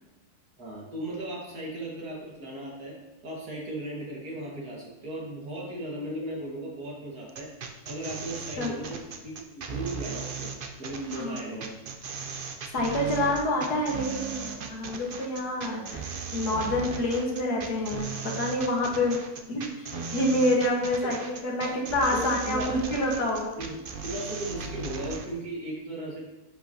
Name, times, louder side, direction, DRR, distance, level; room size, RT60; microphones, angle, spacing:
voice 1, 0.6-3.0 3.2-7.5 7.9-10.5 10.8-11.7 21.0-21.1 21.6-21.7 22.1-22.7 23.6-23.7 24.0-26.2, right 1 dB, 80° right, -3 dB, 2.5 m, -36 dB
sound 1, 7.3-25.3, right 5 dB, 50° right, 0.7 m, -37 dB
voice 2, 11.1-11.6 12.7-19.2 19.5-19.9 20.1-23.5, left 1 dB, 85° left, -1 dB, 2.2 m, -27 dB
10.0 x 5.9 x 2.9 m, 1.0 s
omnidirectional pair, 1.6 m